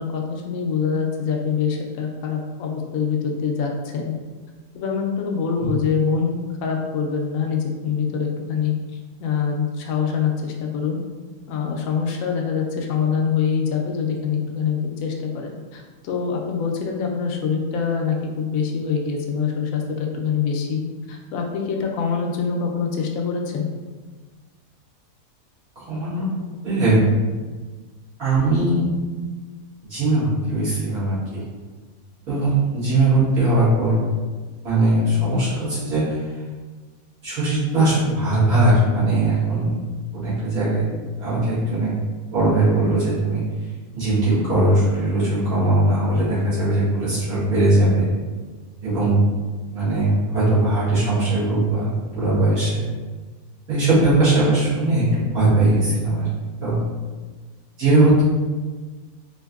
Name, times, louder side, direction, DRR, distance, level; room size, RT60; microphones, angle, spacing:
voice 1, 0.0-4.1 4.7-8.7 9.2-11.0 11.5-20.8 21.1-23.7, left 6 dB, 75° left, 1 dB, 0.9 m, -24 dB
voice 2, 25.8-26.3 26.6-27.0 28.2-28.8 29.9-31.4 32.3-34.0 34.6-36.2 37.2-39.8 40.1-40.9 41.2-41.9 42.3-43.4 43.9-48.1 48.8-49.2 49.7-52.8 53.7-56.3 56.6-56.8 57.8-58.2, right 2 dB, 80° right, -12 dB, 2.2 m, -19 dB
4.4 x 2.6 x 2.3 m, 1.4 s
omnidirectional pair, 1.5 m